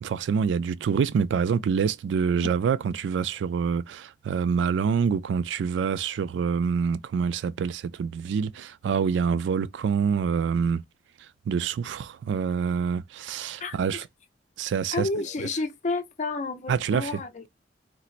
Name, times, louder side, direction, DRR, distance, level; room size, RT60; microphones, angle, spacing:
voice 1, 0.0-10.8 11.5-14.1 14.6-15.1 15.4-15.5 16.7-17.2, right 6 dB, 90° right, 0.3 m, -26 dB
voice 2, 14.9-17.5, left 3 dB, 45° left, 0.5 m, -30 dB
4.1 x 2.0 x 2.4 m
head